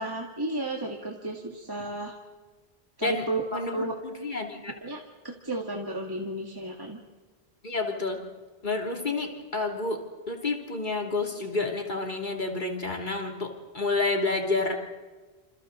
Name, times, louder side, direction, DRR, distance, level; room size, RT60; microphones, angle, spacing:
voice 1, 0.0-2.1 3.0-3.9 4.8-7.0, right 1 dB, 20° right, 0 dB, 2.0 m, -33 dB
voice 2, 4.2-4.7 7.6-8.2 8.6-10.0 10.3-14.8, left 3 dB, 50° left, 2 dB, 3.0 m, -29 dB
29.0 x 27.0 x 3.9 m, 1.3 s
omnidirectional pair, 1.0 m